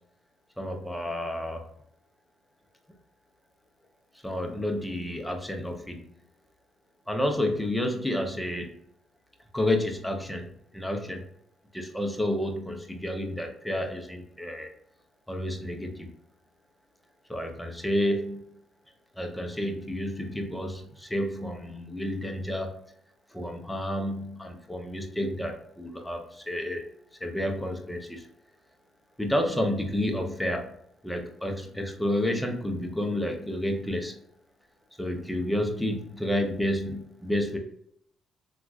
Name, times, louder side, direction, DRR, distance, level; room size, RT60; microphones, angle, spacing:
voice 1, 0.6-1.6 4.2-6.1 7.1-8.7 9.5-11.3 11.7-14.7 15.3-16.1 17.3-18.4 19.2-22.7 23.3-26.8 27.2-28.3 29.2-30.7 31.0-34.2 35.0-37.6, left 1 dB, 5° left, 3 dB, 0.7 m, -30 dB
3.6 x 2.4 x 2.4 m, 0.70 s
cardioid pair, 90°, 0 cm